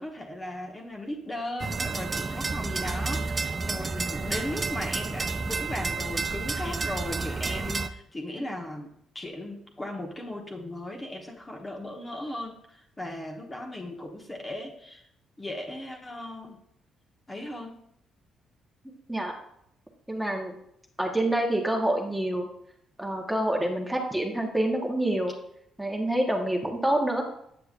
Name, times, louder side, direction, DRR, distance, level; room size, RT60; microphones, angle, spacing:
voice 1, 0.0-15.1 15.4-16.6 17.3-17.8, left 1 dB, 20° left, 0 dB, 1.1 m, -37 dB
sound 1, 1.6-7.9, right 4 dB, 30° right, 0.4 m, -30 dB
voice 2, 20.1-20.5 21.0-22.5 23.0-25.3 25.8-27.2, right 1 dB, 5° right, 1 dB, 1.1 m, -27 dB
8.1 x 6.7 x 2.5 m, 0.74 s
cardioid pair, 90°, 0 cm